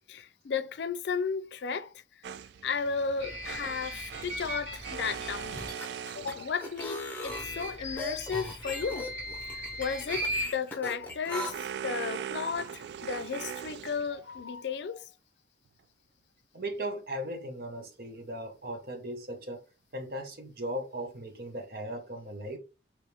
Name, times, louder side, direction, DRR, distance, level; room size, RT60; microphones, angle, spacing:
voice 1, 0.1-1.9 2.6-5.7 6.1-9.1 9.4-11.5 11.8-15.0, left 5 dB, 85° left, 0.4 m, -34 dB
sound 1, 2.2-7.2 10.2-14.4, right 8 dB, 80° right, 0.3 m, -41 dB
sound 2, 3.2-5.7 7.2-10.5, equal, 40° right, 2.1 m, -38 dB
sound 3, 5.4-11.5, left 2 dB, 10° left, 0.8 m, -39 dB
voice 2, 16.5-19.6 19.9-22.6, right 1 dB, 55° right, 0.8 m, -37 dB
3.4 x 3.0 x 4.3 m
head